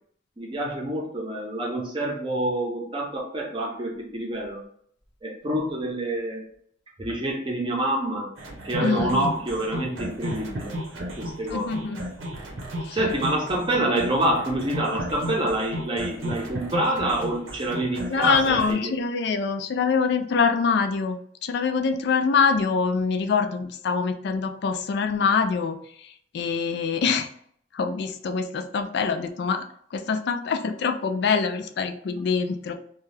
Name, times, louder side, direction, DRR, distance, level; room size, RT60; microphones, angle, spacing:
voice 1, 0.4-4.6 5.2-6.5 7.0-8.3 8.6-10.7 11.2-11.7 12.9-18.9, right 1 dB, 25° right, -1 dB, 0.6 m, -27 dB
sound 1, 8.4-18.7, equal, 75° right, 0.7 m, -34 dB
voice 2, 8.8-9.3 11.5-12.0 12.8-13.0 18.1-25.8 26.3-27.3 27.7-29.6 29.9-32.7, left 5 dB, 55° left, 7 dB, 0.3 m, -24 dB
2.7 x 2.3 x 3.2 m, 0.64 s
head